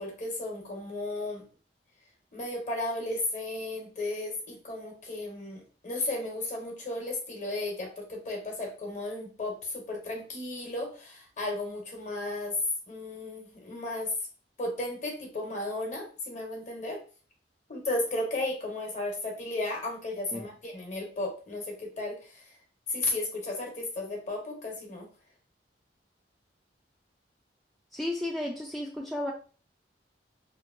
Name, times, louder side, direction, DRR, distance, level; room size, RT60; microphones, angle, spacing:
voice 1, 0.0-1.4 2.3-12.6 12.9-14.1 14.6-17.0 17.7-22.5 22.9-25.1, left 2 dB, 45° left, 1 dB, 1.0 m, -34 dB
voice 2, 27.9-29.3, left 1 dB, ahead, -1 dB, 0.3 m, -33 dB
2.8 x 2.6 x 2.5 m, 0.37 s
head